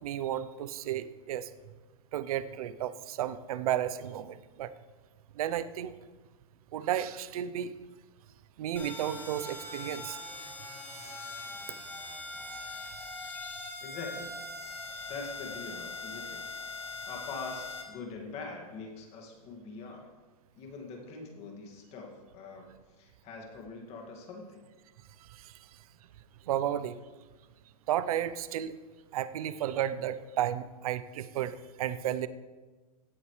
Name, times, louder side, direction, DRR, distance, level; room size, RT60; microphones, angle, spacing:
voice 1, 0.0-1.5 2.1-4.7 5.3-5.9 6.7-7.7 8.6-10.2 11.0-11.5 12.5-13.8 25.2-25.7 26.4-27.0 27.9-28.8 29.1-32.3, right 11 dB, 70° right, 14 dB, 0.7 m, -33 dB
sound 1, 8.8-17.8, left 3 dB, 10° left, 1.5 m, -41 dB
voice 2, 13.8-14.3 15.1-16.4 16.7-20.1 20.5-22.7 23.0-24.6, left 4 dB, 30° left, 1 dB, 2.2 m, -43 dB
16.5 x 8.4 x 3.3 m, 1.3 s
supercardioid pair, 150°, 19 cm